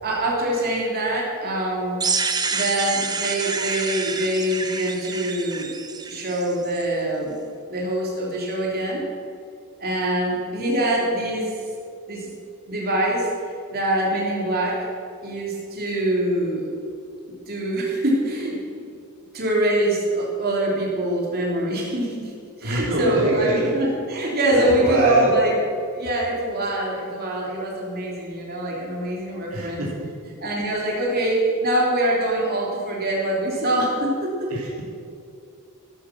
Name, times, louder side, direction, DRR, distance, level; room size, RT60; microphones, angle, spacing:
voice 1, 0.0-2.0 2.5-5.7 6.1-7.3 7.7-9.1 9.8-11.5 12.1-12.3 12.7-13.3 13.7-14.9 15.2-16.7 17.5-18.9 19.3-22.3 22.6-25.5 25.9-29.8 30.4-34.5, right 1 dB, 45° right, -3 dB, 3.3 m, -24 dB
sound 1, 2.0-6.8, right 4 dB, 20° right, 0.8 m, -28 dB
voice 2, 22.6-23.7 24.5-25.4 29.5-30.1 34.5-34.8, right 1 dB, 65° right, -4 dB, 2.9 m, -25 dB
13.5 x 12.0 x 6.1 m, 2.4 s
head